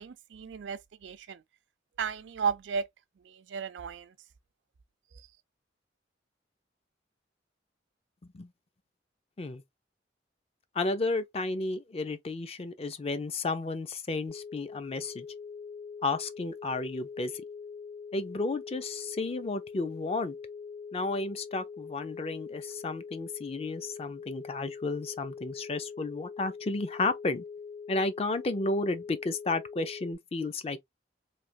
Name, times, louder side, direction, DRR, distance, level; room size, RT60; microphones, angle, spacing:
voice 1, 0.0-1.4 2.0-2.9 3.3-4.1, right 6 dB, 85° right, 0.4 m, -34 dB
voice 2, 10.7-15.3 16.0-17.4 18.1-20.4 20.9-27.4 27.9-30.8, left 3 dB, 35° left, 0.4 m, -32 dB
sound 1, 14.3-30.2, left 5 dB, 75° left, 1.8 m, -43 dB
3.2 x 2.7 x 2.4 m
head